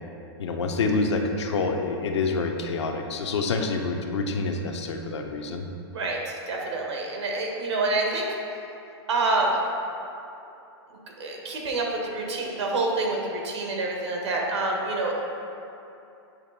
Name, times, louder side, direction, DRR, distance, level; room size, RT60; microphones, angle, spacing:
voice 1, 0.4-5.7, left 3 dB, 90° left, 3 dB, 0.7 m, -27 dB
voice 2, 5.9-8.3 9.1-9.6 11.2-15.2, right 2 dB, 85° right, 0 dB, 1.3 m, -27 dB
8.3 x 3.2 x 4.0 m, 2.8 s
hypercardioid pair, 145°, 14 cm